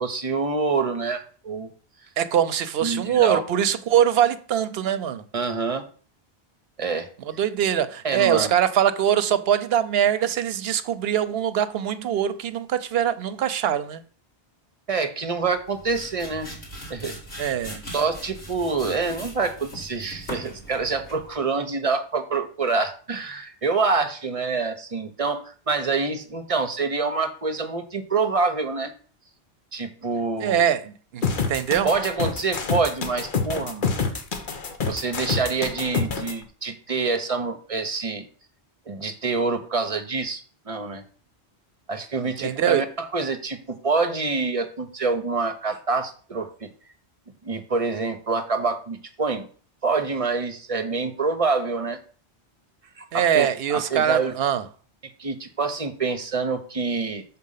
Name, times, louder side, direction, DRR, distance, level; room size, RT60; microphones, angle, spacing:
voice 1, 0.0-1.7 2.8-3.4 5.3-5.8 6.8-7.1 8.0-8.5 14.9-16.5 16.9-17.4 17.9-28.9 29.7-30.6 31.8-33.9 34.8-38.2 38.9-40.4 40.7-41.0 41.9-46.7 47.4-49.5 49.8-52.0 53.0-54.3 55.2-57.2, right 4 dB, 35° right, 0.9 m, -26 dB
voice 2, 2.2-5.2 7.2-14.0 17.4-17.8 30.4-31.2 31.5-31.9 42.4-42.8 53.1-54.6, right 9 dB, 70° right, 0.9 m, -23 dB
sound 1, 15.5-21.3, equal, 85° left, 2.7 m, -40 dB
sound 2, 31.2-36.3, left 5 dB, 50° left, 1.1 m, -27 dB
6.4 x 4.3 x 5.6 m
omnidirectional pair, 1.1 m